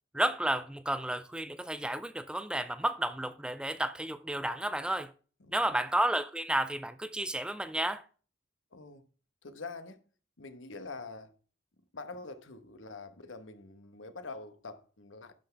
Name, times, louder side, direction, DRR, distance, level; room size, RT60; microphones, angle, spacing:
voice 1, 0.1-5.1 5.5-8.0, right 1 dB, 5° right, 0.4 m, -32 dB
voice 2, 5.4-5.8 8.7-9.1 9.4-10.0 10.4-11.4 11.9-15.3, left 3 dB, 80° left, 1.2 m, -45 dB
11.5 x 5.9 x 3.4 m
head